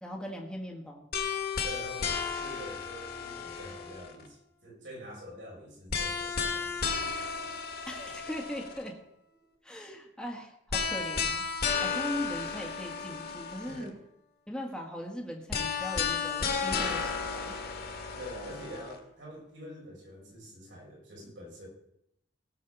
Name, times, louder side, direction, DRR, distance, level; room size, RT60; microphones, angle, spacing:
voice 1, 0.0-1.1 7.9-9.0 9.6-11.4 11.8-13.9 14.5-17.6, equal, 5° left, -1 dB, 1.6 m, -39 dB
sound 1, 1.1-4.3 5.9-8.9 10.7-13.9 15.5-18.9, left 5 dB, 55° left, 2.0 m, -33 dB
voice 2, 1.6-7.5 13.6-13.9 18.2-21.7, equal, 80° right, -3 dB, 6.6 m, -46 dB
17.5 x 6.4 x 7.0 m, 0.78 s
head